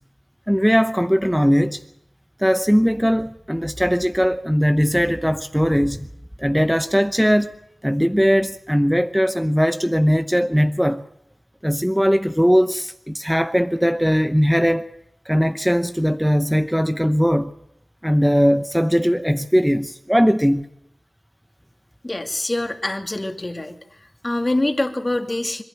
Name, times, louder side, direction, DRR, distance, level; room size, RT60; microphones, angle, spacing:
voice 1, 0.5-1.8 2.4-6.1 6.4-7.5 7.8-11.0 11.6-14.9 15.3-17.5 18.0-20.7, equal, ahead, 0.8 m, -19 dB
voice 2, 22.0-23.8 24.2-25.6, left 1 dB, 30° left, 2.4 m, -24 dB
26.5 x 11.5 x 9.1 m
wide cardioid pair, 55°, 0 cm